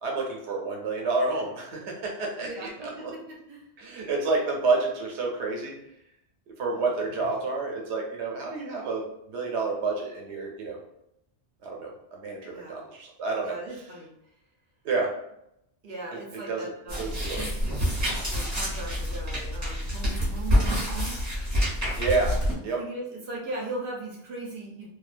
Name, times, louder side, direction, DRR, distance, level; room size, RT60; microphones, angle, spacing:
voice 1, 0.0-2.7 3.8-5.7 6.6-10.8 11.6-13.6 14.8-15.1 16.5-16.6 17.0-17.4 22.0-22.8, right 3 dB, 85° right, -1 dB, 0.9 m, -29 dB
voice 2, 2.4-3.7 6.7-7.3 12.4-12.8 13.4-14.1 15.8-17.8 18.2-21.2 22.8-24.9, right 2 dB, 60° right, -2 dB, 0.7 m, -39 dB
sound 1, 16.9-22.5, equal, 15° right, 0.8 m, -27 dB
2.6 x 2.1 x 2.4 m, 0.79 s
omnidirectional pair, 1.1 m